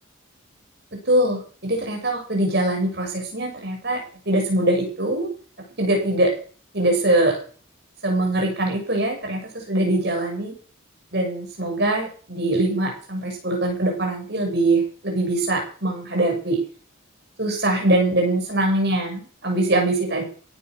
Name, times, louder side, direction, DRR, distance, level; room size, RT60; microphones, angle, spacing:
voice 1, 1.1-5.3 5.8-6.3 6.7-7.4 8.0-10.5 11.1-16.6 17.4-20.2, right 1 dB, 50° right, 2 dB, 7.1 m, -22 dB
17.0 x 9.7 x 6.5 m, 0.41 s
head